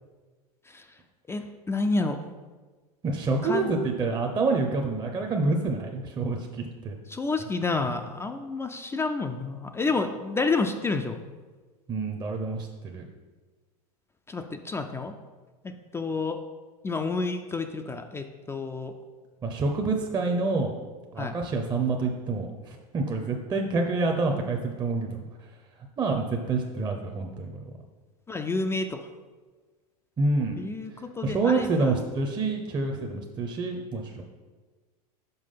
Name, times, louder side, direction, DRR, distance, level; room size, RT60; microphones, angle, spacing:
voice 1, 1.3-2.2 3.4-3.7 7.1-11.2 14.3-15.2 15.6-16.4 16.8-18.9 21.2-21.4 28.3-29.1 30.6-31.9, left 3 dB, 15° left, 6 dB, 0.4 m, -29 dB
voice 2, 3.0-6.9 11.9-13.1 19.4-20.7 21.1-25.2 26.0-27.6 30.2-30.6 31.2-34.2, right 3 dB, 20° right, 3 dB, 0.7 m, -27 dB
5.5 x 4.7 x 5.6 m, 1.3 s
hypercardioid pair, 95°, 20 cm